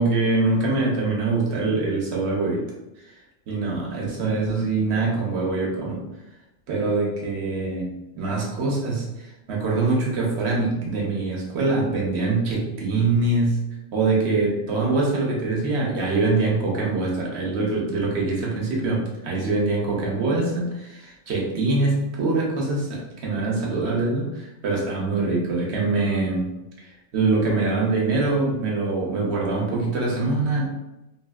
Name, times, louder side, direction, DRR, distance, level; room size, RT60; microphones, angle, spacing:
voice 1, 0.0-2.6 3.5-6.0 6.7-13.6 13.9-26.5 26.8-30.7, right 3 dB, 65° right, -2 dB, 0.9 m, -24 dB
2.8 x 2.4 x 2.3 m, 0.96 s
omnidirectional pair, 1.3 m